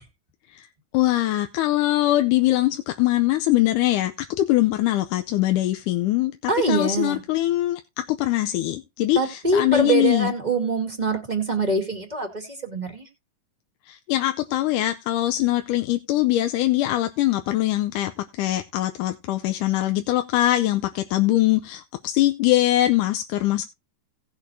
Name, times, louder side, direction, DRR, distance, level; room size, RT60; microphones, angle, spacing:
voice 1, 0.9-7.8 8.1-10.3 13.9-23.7, left 15 dB, 85° left, 2.2 m, -22 dB
voice 2, 6.5-7.2 9.1-13.1, right 3 dB, 15° right, 1.6 m, -24 dB
17.5 x 6.6 x 2.7 m
omnidirectional pair, 3.6 m